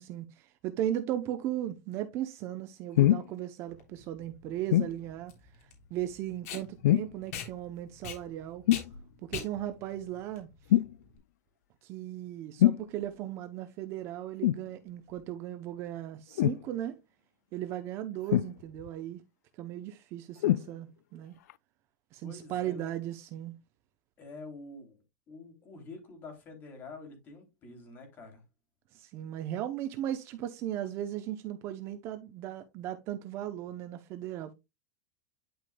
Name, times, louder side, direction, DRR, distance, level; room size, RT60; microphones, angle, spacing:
voice 1, 0.0-5.3 5.6-8.6 9.2-10.8 11.8-17.0 17.5-19.2 19.6-21.4 22.1-23.5 28.9-34.5, right 12 dB, 30° right, 0.6 m, -37 dB
sound 1, 3.0-3.3 4.7-5.0 6.8-7.2 8.7-8.9 10.7-11.0 12.6-12.9 14.4-14.7 16.4-16.6 18.3-18.9 20.4-20.7 21.5-21.6, left 13 dB, 85° left, 0.4 m, -24 dB
Packing tape duct tape, 3.7-11.2, left 6 dB, 65° left, 3.2 m, -43 dB
voice 2, 22.2-22.9 24.2-28.4, left 3 dB, 25° left, 3.0 m, -47 dB
11.0 x 5.1 x 2.2 m
supercardioid pair, 170°, 9 cm